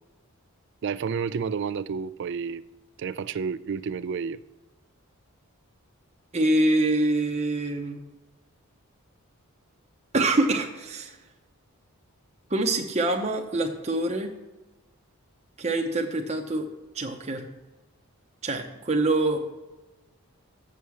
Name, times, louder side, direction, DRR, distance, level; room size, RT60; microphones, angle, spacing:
voice 1, 0.8-2.6 3.0-4.4, right 6 dB, 50° right, 0.3 m, -30 dB
voice 2, 6.3-8.0 10.1-11.2 12.5-14.3 15.6-16.7 16.9-17.5 18.4-19.4, right 2 dB, 30° right, 0.7 m, -25 dB
6.9 x 6.3 x 7.0 m
head